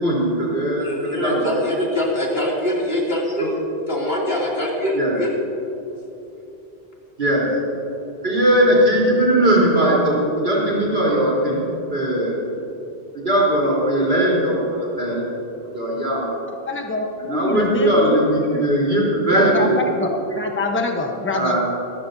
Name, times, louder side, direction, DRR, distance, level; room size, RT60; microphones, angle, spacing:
voice 1, 0.0-1.6 3.4-3.5 4.9-5.2 7.2-7.5 8.2-11.6 11.9-12.4 13.1-15.2 15.7-16.3 17.2-19.8 21.3-21.6, right 1 dB, 70° right, -6 dB, 4.1 m, -19 dB
voice 2, 0.8-3.6 3.9-5.3, left 1 dB, 70° left, -4 dB, 3.2 m, -23 dB
voice 3, 16.7-18.2 18.5-18.6 19.3-20.1 20.3-21.6, left 2 dB, 10° left, 2 dB, 1.0 m, -25 dB
25.0 x 13.0 x 2.8 m, 2.9 s
omnidirectional pair, 1.0 m